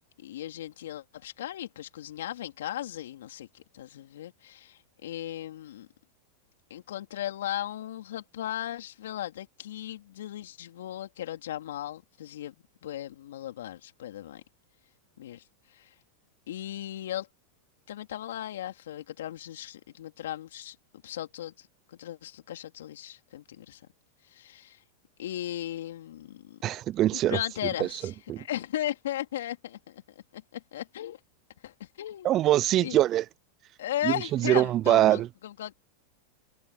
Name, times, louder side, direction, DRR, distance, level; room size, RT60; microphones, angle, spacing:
voice 1, 0.2-5.9 6.7-12.5 12.8-14.4 15.2-15.4 15.7-15.9 16.5-17.3 17.9-20.7 21.0-21.7 22.0-23.8 24.3-24.8 25.2-26.6 27.1-30.0 30.3-31.2 31.6-32.4 32.8-33.0 33.8-35.7, left 12 dB, 75° left, 3.5 m, -37 dB
voice 2, 26.6-27.4 28.3-28.4 32.2-33.2 34.3-35.3, right 13 dB, 40° right, 0.5 m, -23 dB
hypercardioid pair, 105°, 0 cm